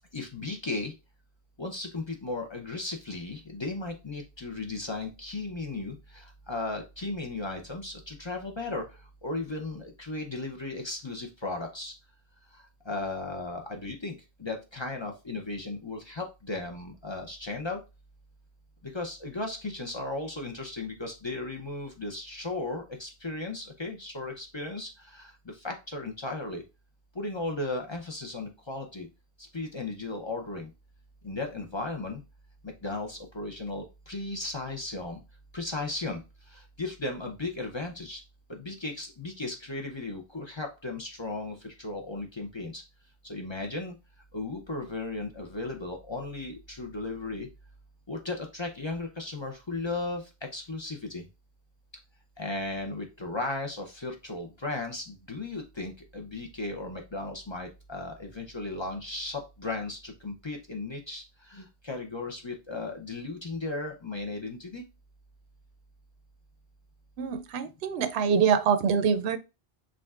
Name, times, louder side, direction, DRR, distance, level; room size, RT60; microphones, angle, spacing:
voice 1, 0.1-0.9 1.6-8.8 9.2-11.9 12.9-17.8 18.9-25.3 25.6-26.6 27.2-29.1 29.5-30.7 31.2-32.2 32.8-35.2 35.5-36.2 36.8-38.2 38.5-42.8 43.2-43.9 44.3-47.5 48.1-50.2 50.5-51.2 52.4-61.2 61.5-64.8, left 2 dB, 30° left, 0.6 m, -36 dB
voice 2, 67.2-69.4, right 6 dB, 90° right, 0.8 m, -25 dB
5.1 x 3.6 x 2.4 m
omnidirectional pair, 1.1 m